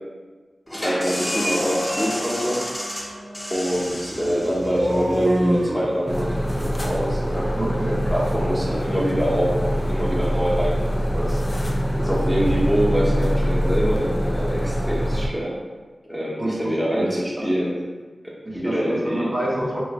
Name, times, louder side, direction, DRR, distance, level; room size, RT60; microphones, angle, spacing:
sound 1, 0.7-6.1, equal, 15° left, 1.1 m, -30 dB
voice 1, 0.7-2.6 3.5-7.7 8.1-15.6 16.0-17.8 18.5-19.3, equal, 10° right, -6 dB, 0.8 m, -25 dB
sound 2, 3.7-11.6, right 1 dB, 75° right, 0.5 m, -30 dB
sound 3, 6.1-15.3, equal, 35° left, 0.5 m, -24 dB
voice 2, 7.6-8.1 16.4-17.8 18.4-19.8, right 1 dB, 45° right, -6 dB, 0.9 m, -28 dB
3.1 x 2.8 x 2.8 m, 1.4 s
cardioid pair, 45°, 0 cm